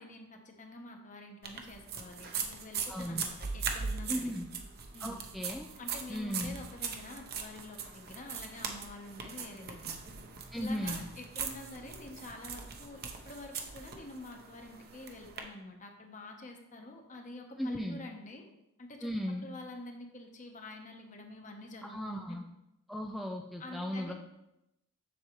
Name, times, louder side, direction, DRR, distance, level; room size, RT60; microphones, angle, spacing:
voice 1, 0.0-4.3 4.9-5.2 5.8-10.0 10.5-18.5 18.8-19.1 19.4-22.4 23.6-24.1, left 2 dB, 35° left, 3 dB, 1.0 m, -47 dB
sound 1, 1.4-15.4, right 6 dB, 45° right, 0.8 m, -40 dB
voice 2, 2.9-3.2 4.1-4.5 5.0-5.7 6.1-6.5 10.5-11.0 17.6-18.0 19.0-19.5 21.9-22.4 22.9-24.1, equal, ahead, 1 dB, 0.4 m, -36 dB
7.2 x 6.3 x 3.1 m, 0.87 s
head